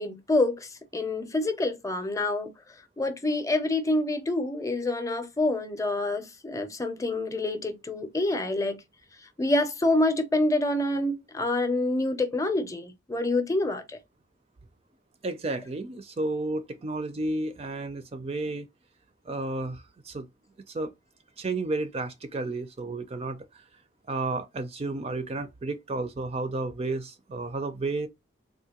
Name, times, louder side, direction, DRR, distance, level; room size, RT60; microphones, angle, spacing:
voice 1, 0.0-2.5 3.0-8.8 9.4-13.8, left 2 dB, 15° left, 0.6 m, -27 dB
voice 2, 15.2-18.7 19.3-20.3 20.7-20.9 21.4-23.4 24.1-28.1, right 2 dB, 30° right, 0.4 m, -32 dB
3.6 x 2.5 x 2.8 m
head